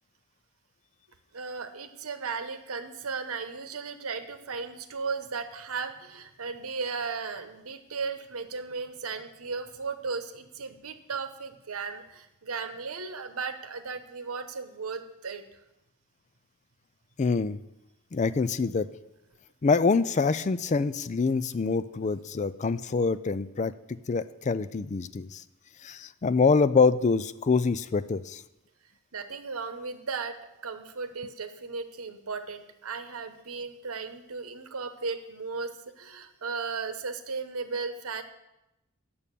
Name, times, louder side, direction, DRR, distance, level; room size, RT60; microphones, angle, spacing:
voice 1, 1.3-15.4 29.1-30.4 30.6-35.7 36.0-38.2, right 4 dB, 85° right, 8 dB, 1.0 m, -36 dB
voice 2, 17.2-17.6 18.1-18.9 19.6-23.7 24.1-25.4 25.8-28.4, left 4 dB, 35° left, 14 dB, 0.4 m, -25 dB
9.1 x 7.0 x 6.8 m, 0.92 s
head